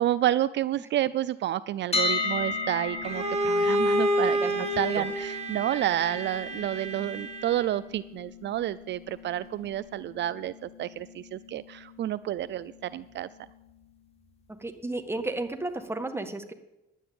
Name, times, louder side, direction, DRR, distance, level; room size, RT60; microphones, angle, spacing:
voice 1, 0.0-13.3, right 12 dB, 65° right, 16 dB, 0.4 m, -30 dB
sound 1, 1.9-13.8, left 3 dB, 30° left, 2.4 m, -37 dB
Bowed string instrument, 3.0-7.9, equal, 30° right, 2.4 m, -28 dB
voice 2, 14.6-16.5, right 2 dB, 10° right, 6 dB, 1.7 m, -32 dB
11.0 x 9.2 x 8.6 m, 0.95 s
cardioid pair, 90°, 20 cm